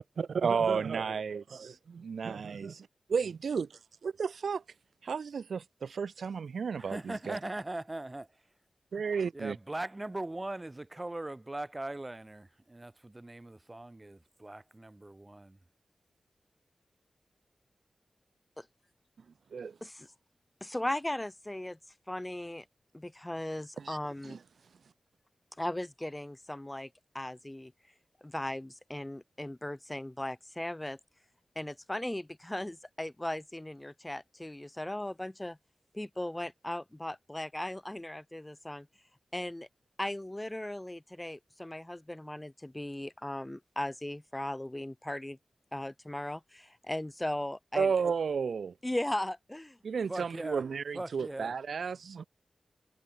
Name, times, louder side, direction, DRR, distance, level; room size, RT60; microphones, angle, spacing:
voice 1, 0.0-2.7 3.1-4.6 5.0-7.4 8.9-9.6 19.5-19.8 23.8-24.0 24.2-24.4 47.8-48.7 49.8-52.2, right 6 dB, 85° right, 0.6 m, -33 dB
voice 2, 6.8-8.3 9.3-15.6 50.1-50.6 50.9-51.5, right 2 dB, 20° right, 4.0 m, -40 dB
voice 3, 20.6-21.8 22.1-22.6 22.9-24.4 25.6-26.9 27.1-27.7 28.2-31.0 31.5-35.6 35.9-38.9 39.3-39.7 40.0-45.4 45.7-47.9 48.8-49.8, left 1 dB, 15° left, 1.6 m, -37 dB
wide cardioid pair, 110°, 0 cm